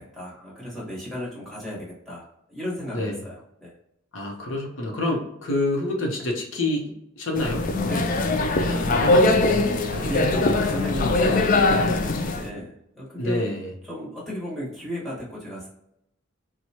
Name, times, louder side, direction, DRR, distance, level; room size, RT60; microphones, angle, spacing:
voice 1, 0.0-3.7 7.8-9.3 9.9-13.5 13.8-15.7, equal, ahead, -7 dB, 1.4 m, -35 dB
voice 2, 4.1-7.6 8.8-9.4 13.2-13.7, left 2 dB, 70° left, 0 dB, 0.8 m, -27 dB
sound 1, 7.4-12.5, left 2 dB, 40° left, 0.3 m, -21 dB
Wind instrument woodwind instrument, 8.0-11.6, equal, 30° right, 0.5 m, -41 dB
4.4 x 2.2 x 2.8 m, 0.78 s
head